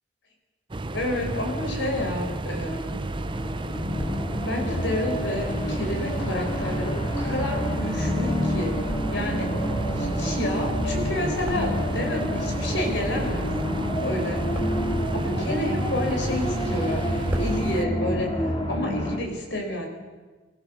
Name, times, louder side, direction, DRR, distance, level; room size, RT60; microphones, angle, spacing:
sound 1, 0.7-17.8, right 2 dB, 25° right, 0.6 m, -32 dB
voice 1, 0.9-3.0 4.4-8.8 9.1-9.5 9.9-13.4 14.0-14.4 15.1-19.9, left 1 dB, 70° left, 2 dB, 5.1 m, -30 dB
sound 2, 3.0-19.2, equal, 30° left, 2.3 m, -28 dB
sound 3, 3.8-4.2 4.9-8.2 8.6-9.4 9.7-12.1 12.4-13.6 14.0-15.0 15.5-16.5 16.9-17.0 17.1-17.6, equal, 5° right, 3.7 m, -39 dB
25.0 x 15.5 x 6.8 m, 1.3 s
head